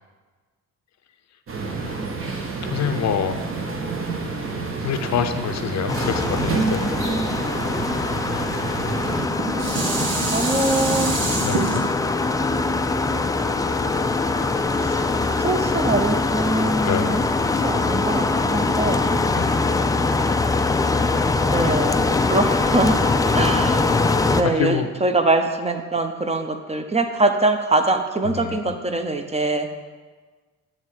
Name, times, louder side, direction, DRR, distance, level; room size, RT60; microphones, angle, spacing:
sound 1, 1.5-9.3, right 4 dB, 45° right, 1.1 m, -28 dB
voice 1, 2.7-3.5 4.8-6.9 11.4-11.8 16.8-17.2 19.3-19.6 24.4-24.9 28.2-28.7, left 8 dB, 60° left, 8 dB, 0.6 m, -26 dB
sound 2, 5.9-24.4, left 3 dB, 10° left, 0.3 m, -22 dB
Dishes pots and pans, 9.0-14.3 14.8-14.9, right 3 dB, 90° right, 1.2 m, -27 dB
voice 2, 9.5-11.1 14.8-15.0 15.4-17.2 17.6-19.0 21.5-23.0 23.3-23.8 24.3-29.7, right 2 dB, 20° right, 6 dB, 0.6 m, -23 dB
8.6 x 3.2 x 6.4 m, 1.4 s
cardioid pair, 90°, 30 cm